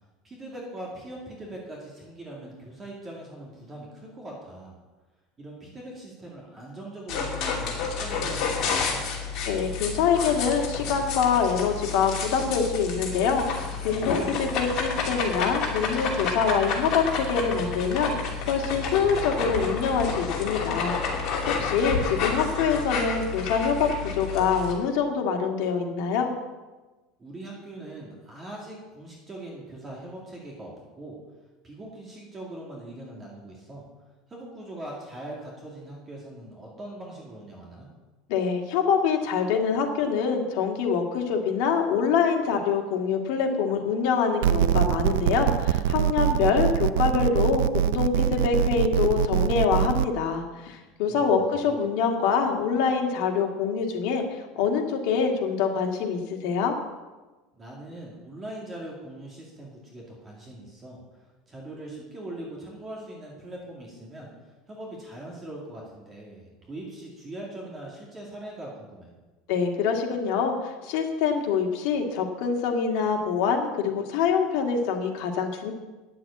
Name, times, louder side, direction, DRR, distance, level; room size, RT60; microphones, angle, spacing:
voice 1, 0.2-4.8 5.4-9.1 27.2-31.2 31.6-33.8 34.3-37.9 51.1-51.7 57.6-69.1, right 1 dB, 20° right, -2 dB, 2.3 m, -41 dB
sound 1, 7.1-24.7, left 5 dB, 40° left, 2.9 m, -30 dB
voice 2, 9.4-26.3 38.3-56.7 69.5-75.7, left 6 dB, 60° left, 2 dB, 2.0 m, -25 dB
sound 2, 44.4-50.1, right 10 dB, 90° right, 0.4 m, -23 dB
10.0 x 7.7 x 8.4 m, 1.2 s
cardioid pair, 165°, 0 cm